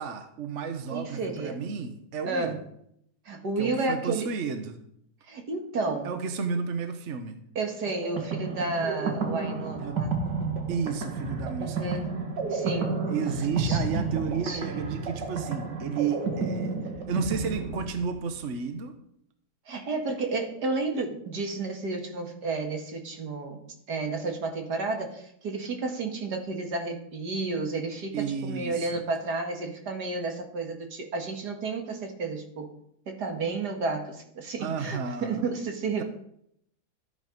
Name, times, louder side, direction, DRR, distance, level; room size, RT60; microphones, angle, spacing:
voice 1, 0.0-2.6 3.6-4.8 6.0-7.4 9.8-10.0 10.7-12.0 13.1-18.9 28.1-29.0 34.6-35.5, right 5 dB, 50° right, 7 dB, 1.3 m, -32 dB
voice 2, 0.9-1.6 2.2-2.6 3.3-4.3 5.3-6.1 7.6-10.1 11.6-12.1 12.5-13.0 13.6-14.9 19.7-23.6 23.9-32.7 33.1-36.0, right 3 dB, 70° right, 3 dB, 2.4 m, -32 dB
sound 1, 7.9-18.4, right 4 dB, 85° right, 2.3 m, -31 dB
13.0 x 8.9 x 5.3 m, 0.71 s
omnidirectional pair, 1.8 m